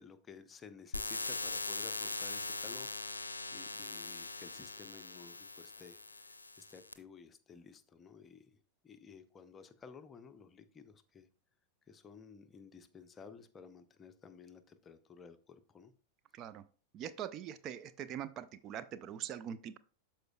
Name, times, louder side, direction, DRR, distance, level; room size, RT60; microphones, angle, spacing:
voice 1, 0.0-11.3 11.9-15.9, left 5 dB, 20° left, 10 dB, 0.7 m, -55 dB
sound 1, 0.9-6.9, left 3 dB, 80° left, 0.5 m, -41 dB
voice 2, 16.3-16.6 16.9-19.8, right 9 dB, 35° right, 13 dB, 0.4 m, -43 dB
13.0 x 4.4 x 2.3 m, 0.40 s
figure-of-eight pair, 90°, 0 cm